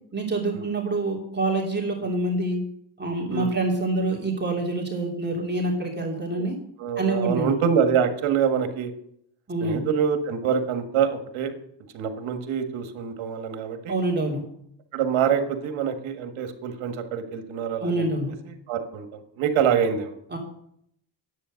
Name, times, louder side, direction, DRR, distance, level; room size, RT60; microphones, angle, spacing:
voice 1, 0.1-2.6 3.0-6.6 7.0-7.5 9.5-9.8 13.9-14.4 17.8-18.3 20.3-20.4, right 2 dB, 20° right, -1 dB, 3.0 m, -26 dB
voice 2, 6.8-8.9 9.6-11.5 11.9-13.9 14.9-18.1 18.5-20.2, right 7 dB, 85° right, 7 dB, 1.7 m, -25 dB
10.0 x 8.4 x 6.5 m, 0.71 s
cardioid pair, 80°, 46 cm